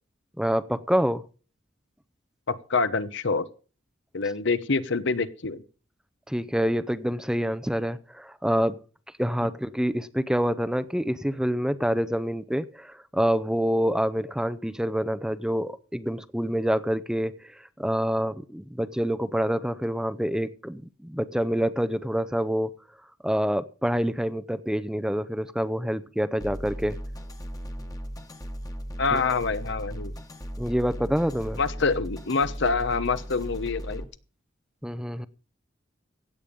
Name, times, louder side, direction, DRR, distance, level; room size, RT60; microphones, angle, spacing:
voice 1, 0.4-1.2 6.3-8.8 9.2-22.7 23.2-27.0 29.1-29.2 30.6-31.6 34.8-35.3, equal, 5° right, 13 dB, 0.6 m, -27 dB
voice 2, 2.5-3.5 4.1-5.6 29.0-30.1 31.6-34.0, left 4 dB, 65° left, 14 dB, 1.0 m, -26 dB
sound 1, 26.4-34.0, equal, 20° left, 1.4 m, -37 dB
16.0 x 8.7 x 5.3 m, 0.38 s
head